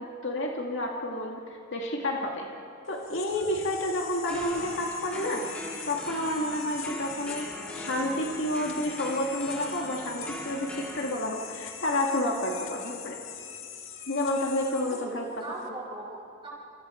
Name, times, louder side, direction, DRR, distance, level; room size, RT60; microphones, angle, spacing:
voice 1, 0.0-2.5 2.9-5.5 5.9-7.5 7.7-13.2 14.1-15.3, left 1 dB, 65° left, 0 dB, 2.0 m, -30 dB
sound 1, 2.9-15.7, left 9 dB, 80° left, 1.8 m, -43 dB
sound 2, 4.3-11.1, equal, 5° left, 3.8 m, -41 dB
voice 2, 14.9-16.5, right 2 dB, 25° right, -5 dB, 6.2 m, -40 dB
28.5 x 28.0 x 4.4 m, 2.5 s
head